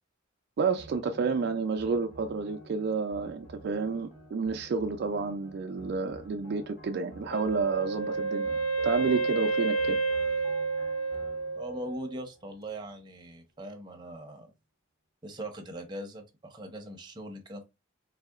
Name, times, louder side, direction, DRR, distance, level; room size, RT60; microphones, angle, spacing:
voice 1, 0.6-10.0, right 4 dB, 55° right, 0.3 m, -30 dB
sound 1, 0.8-13.3, right 1 dB, 50° left, 1.6 m, -51 dB
Wind instrument woodwind instrument, 7.3-12.2, right 3 dB, 85° left, 0.5 m, -30 dB
voice 2, 11.6-14.5 15.2-17.6, right 1 dB, 20° right, 0.6 m, -40 dB
4.0 x 2.7 x 2.4 m
head